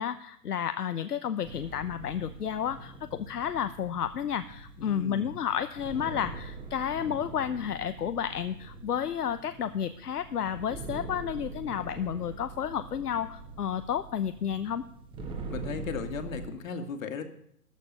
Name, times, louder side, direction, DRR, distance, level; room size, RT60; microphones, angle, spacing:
voice 1, 0.0-14.8, left 9 dB, 75° left, 11 dB, 0.9 m, -31 dB
sound 1, 1.4-16.5, right 3 dB, 10° right, 1.3 m, -43 dB
voice 2, 4.8-5.3 15.5-17.2, left 5 dB, 55° left, 6 dB, 2.2 m, -36 dB
14.0 x 13.0 x 5.5 m, 0.70 s
hypercardioid pair, 140°, 47 cm